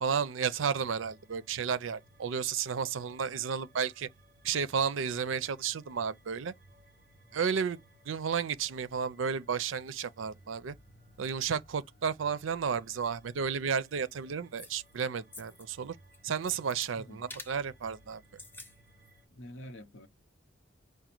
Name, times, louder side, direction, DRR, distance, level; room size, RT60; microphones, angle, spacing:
voice 1, 0.0-4.1 4.4-6.5 7.3-7.8 8.0-10.8 11.2-16.0 16.2-18.2, right 6 dB, 80° right, 0.5 m, -32 dB
sound 1, 0.5-19.3, right 1 dB, 45° right, 1.5 m, -61 dB
sound 2, 14.6-15.0 15.3-15.7 16.0-16.9 17.3-17.6 18.2-18.7 19.1-19.2, left 2 dB, 10° left, 0.6 m, -47 dB
voice 2, 19.3-20.1, equal, 75° left, 0.8 m, -46 dB
5.1 x 2.2 x 4.4 m
head